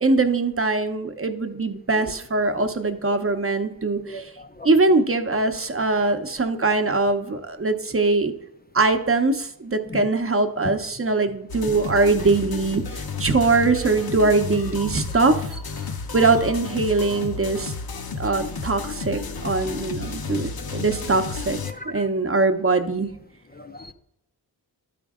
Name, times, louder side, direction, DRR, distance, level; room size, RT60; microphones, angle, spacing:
voice 1, 0.0-4.3 4.6-8.3 8.7-15.6 16.1-17.7 18.2-21.6 21.8-23.1, right 3 dB, 35° right, 6 dB, 0.8 m, -22 dB
voice 2, 4.1-4.7 6.0-6.2 9.9-10.0 10.6-10.7 21.7-22.0 23.6-23.9, left 1 dB, 25° left, 7 dB, 0.5 m, -36 dB
sound 1, 11.5-21.7, left 4 dB, 70° left, 0.9 m, -32 dB
12.0 x 5.1 x 3.6 m, 0.77 s
wide cardioid pair, 95°, 38 cm